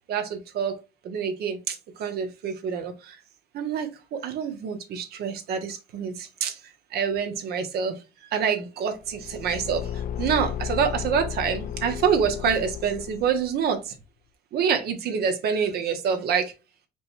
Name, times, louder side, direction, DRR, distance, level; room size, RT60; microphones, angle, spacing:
voice 1, 0.1-0.8 1.0-3.1 3.5-6.5 6.9-8.0 8.3-9.8 10.2-13.8 14.5-16.5, right 7 dB, 70° right, 1.3 m, -26 dB
Car / Engine, 9.0-13.6, left 8 dB, 55° left, 0.5 m, -34 dB
5.1 x 3.4 x 2.6 m
cardioid pair, 110°, 17 cm